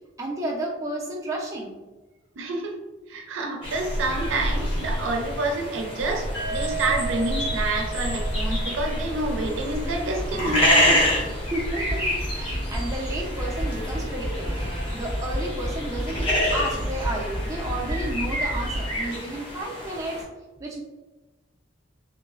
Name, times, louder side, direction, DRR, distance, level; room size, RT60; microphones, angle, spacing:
voice 1, 0.2-1.8 11.5-14.6 14.9-20.2 20.6-20.8, right 1 dB, 15° right, -4 dB, 0.4 m, -32 dB
voice 2, 2.4-2.8 3.1-11.1, right 2 dB, 85° right, 2 dB, 0.5 m, -28 dB
sound 1, 3.6-20.2, equal, 30° left, 0.6 m, -28 dB
sound 2, 6.3-10.2, right 6 dB, 75° left, 0.9 m, -36 dB
sound 3, 7.8-19.1, equal, 60° left, 1.2 m, -32 dB
3.0 x 2.1 x 2.3 m, 1.2 s
head